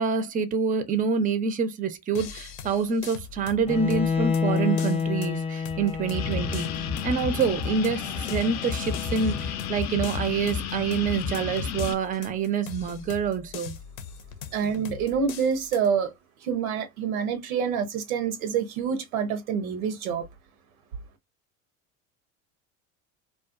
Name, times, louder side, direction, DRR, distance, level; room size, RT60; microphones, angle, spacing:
voice 1, 0.0-13.8, right 5 dB, 20° right, 0.5 m, -27 dB
sound 1, 2.1-15.9, left 7 dB, 85° left, 0.7 m, -42 dB
Bowed string instrument, 3.7-9.7, left 5 dB, 15° left, 0.8 m, -30 dB
sound 2, 6.1-11.9, left 7 dB, 45° left, 0.5 m, -31 dB
voice 2, 14.5-16.1 16.4-20.3, right 7 dB, 90° right, 0.8 m, -27 dB
2.4 x 2.3 x 2.4 m
hypercardioid pair, 75°, 41 cm